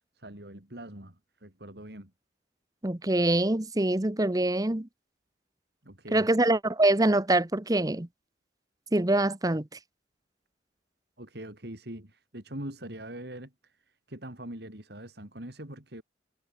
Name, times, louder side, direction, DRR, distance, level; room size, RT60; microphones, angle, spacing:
voice 1, 0.1-2.1 5.8-6.3 11.2-16.0, right 1 dB, 60° right, 4.0 m, -43 dB
voice 2, 2.8-4.9 6.1-8.1 8.9-9.7, right 1 dB, 20° right, 0.9 m, -24 dB
head